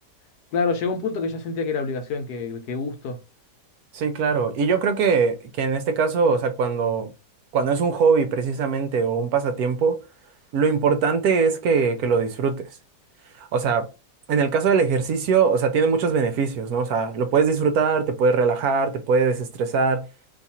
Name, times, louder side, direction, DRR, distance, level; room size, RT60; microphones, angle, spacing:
voice 1, 0.5-3.2, left 4 dB, 70° left, 1.1 m, -27 dB
voice 2, 3.9-7.1 7.5-10.0 10.5-12.7 13.4-13.9 14.3-20.1, right 5 dB, 70° right, 1.0 m, -21 dB
2.9 x 2.4 x 4.1 m
omnidirectional pair, 1.8 m